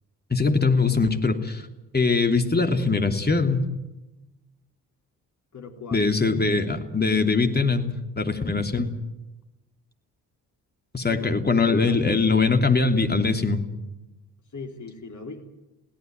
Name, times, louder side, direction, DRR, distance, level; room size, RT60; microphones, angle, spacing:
voice 1, 0.3-1.7 1.9-3.7 5.9-8.9 10.9-13.6, left 4 dB, 20° left, 5 dB, 3.0 m, -22 dB
voice 2, 5.5-6.1 11.1-12.0 14.5-15.5, left 3 dB, 40° left, 4 dB, 3.3 m, -38 dB
22.0 x 17.5 x 9.5 m, 0.99 s
figure-of-eight pair, 40°, 45 cm